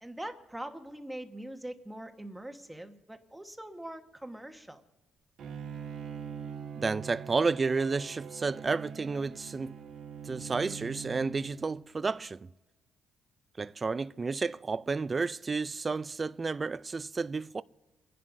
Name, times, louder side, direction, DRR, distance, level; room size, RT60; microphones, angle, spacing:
voice 1, 0.0-4.8, right 1 dB, 5° right, 1.3 m, -43 dB
Bowed string instrument, 5.4-12.1, right 7 dB, 75° right, 1.7 m, -43 dB
voice 2, 6.8-9.7 10.2-12.5 13.6-17.6, right 4 dB, 30° right, 0.4 m, -31 dB
29.5 x 11.0 x 2.7 m
cardioid pair, 90°, 0 cm